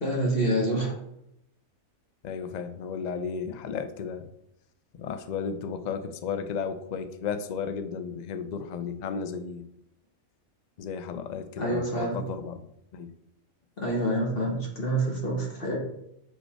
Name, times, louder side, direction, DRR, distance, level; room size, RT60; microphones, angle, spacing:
voice 1, 0.0-0.9 11.6-12.2 13.8-15.8, right 1 dB, 45° left, -1 dB, 1.8 m, -27 dB
voice 2, 2.2-4.3 5.0-9.7 10.8-13.1, left 6 dB, 90° left, 10 dB, 0.3 m, -34 dB
6.5 x 5.3 x 4.4 m, 0.78 s
omnidirectional pair, 1.4 m